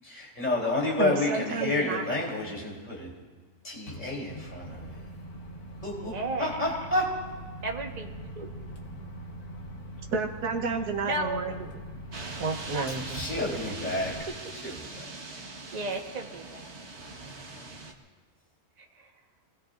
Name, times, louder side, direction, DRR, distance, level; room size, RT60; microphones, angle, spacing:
voice 1, 0.0-3.1 3.6-5.0 5.8-6.1 6.4-7.1 13.1-14.1 14.6-15.1, left 2 dB, 30° left, -3 dB, 3.9 m, -30 dB
voice 2, 1.0-2.0 10.1-11.7 12.4-13.2, right 4 dB, 80° right, 2 dB, 1.8 m, -31 dB
voice 3, 1.6-1.9 6.0-6.6 7.6-8.1 8.4-8.5 11.1-11.7 12.7-12.9 13.7-13.8 14.6-14.7 15.3-16.7 18.8-19.1, right 2 dB, 30° right, 1 dB, 1.4 m, -35 dB
Microwave oven, 3.9-14.2, right 1 dB, 75° left, 2.1 m, -42 dB
sound 1, 12.1-17.9, right 3 dB, 50° right, 1.7 m, -42 dB
25.5 x 20.0 x 2.6 m, 1.4 s
omnidirectional pair, 1.6 m